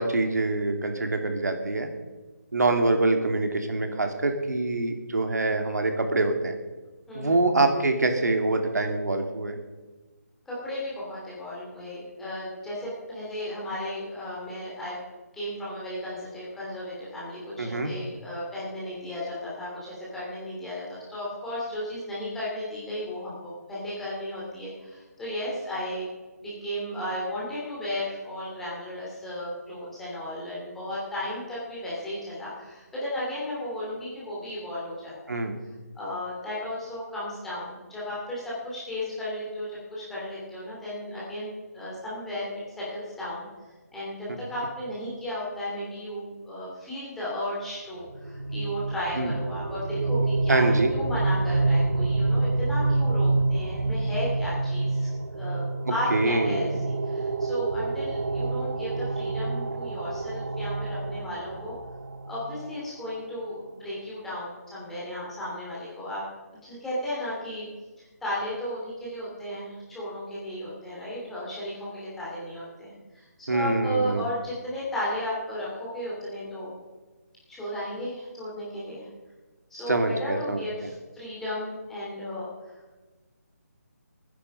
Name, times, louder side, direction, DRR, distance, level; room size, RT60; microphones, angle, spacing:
voice 1, 0.0-1.9 2.5-6.5 7.1-9.6 17.6-17.9 35.3-35.6 49.2-49.3 50.5-50.9 56.1-56.7 73.5-74.3 79.9-80.6, right 2 dB, 75° right, 5 dB, 2.5 m, -25 dB
voice 2, 7.1-7.4 10.5-15.0 15.3-26.1 26.4-35.3 35.9-43.5 43.9-55.1 55.3-61.7 62.3-66.2 66.6-67.7 68.0-76.8 77.5-79.1 79.7-82.5, left 1 dB, 5° left, -8 dB, 2.9 m, -34 dB
sound 1, 48.0-62.8, right 3 dB, 55° right, 1.3 m, -28 dB
17.5 x 10.5 x 5.5 m, 1.2 s
hypercardioid pair, 175°, 9 cm